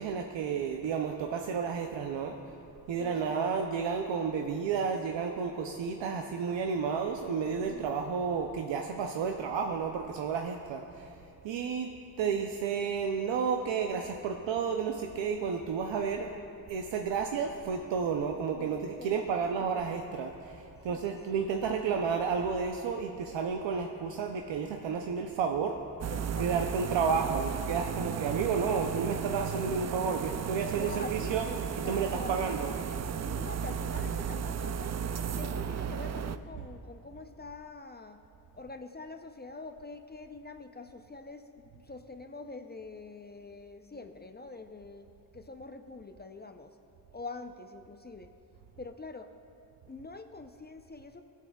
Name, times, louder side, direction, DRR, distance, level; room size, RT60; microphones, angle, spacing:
voice 1, 0.0-2.4 2.9-11.2 11.4-16.3 16.7-25.8 26.4-32.8 34.0-34.1 36.5-36.6, right 6 dB, 85° right, 3 dB, 0.6 m, -31 dB
voice 2, 3.0-3.3 7.7-8.0 16.2-16.6 18.3-19.4 19.7-19.8 20.9-21.0 26.1-26.5 30.3-30.4 30.7-31.6 31.8-32.5 33.2-34.9 35.3-38.2 38.5-45.1 45.3-46.7 47.1-48.3 48.8-49.3 49.9-51.2, left 3 dB, 25° left, 7 dB, 0.5 m, -45 dB
sound 1, 26.0-36.4, right 7 dB, 40° right, 0.4 m, -34 dB
17.5 x 7.4 x 2.3 m, 2.7 s
cardioid pair, 50°, 43 cm